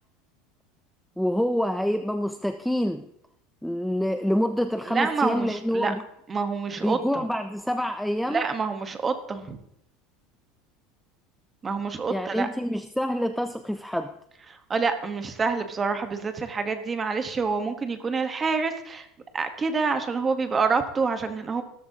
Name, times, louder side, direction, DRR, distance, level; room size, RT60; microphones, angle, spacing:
voice 1, 1.2-3.1 3.6-6.0 6.8-8.4 12.1-14.1, equal, ahead, 8 dB, 0.4 m, -26 dB
voice 2, 4.9-5.9 6.3-7.2 8.3-9.6 11.6-12.5 14.5-19.1 19.3-21.6, right 4 dB, 20° right, 8 dB, 1.1 m, -27 dB
16.0 x 13.5 x 2.8 m, 0.76 s
cardioid pair, 165°, 0 cm